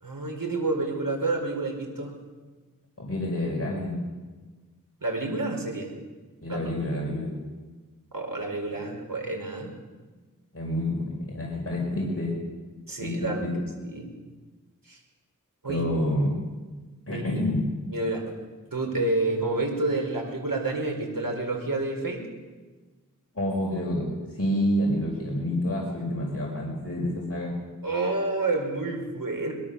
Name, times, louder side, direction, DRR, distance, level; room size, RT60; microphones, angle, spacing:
voice 1, 0.0-2.1 5.0-5.9 6.5-6.6 8.1-9.7 12.9-13.5 13.8-14.1 14.9-15.0 15.6-15.8 17.1-17.2 17.9-18.2 18.7-22.2 27.8-29.5, right 2 dB, 80° right, 2 dB, 4.7 m, -29 dB
voice 2, 3.0-4.0 6.4-7.3 10.5-12.3 13.0-13.1 13.4-13.5 15.6-16.3 17.1-17.6 23.3-24.1 24.4-27.5, left 1 dB, 45° left, -4 dB, 5.7 m, -28 dB
22.5 x 22.0 x 7.1 m, 1.3 s
wide cardioid pair, 70°, 33 cm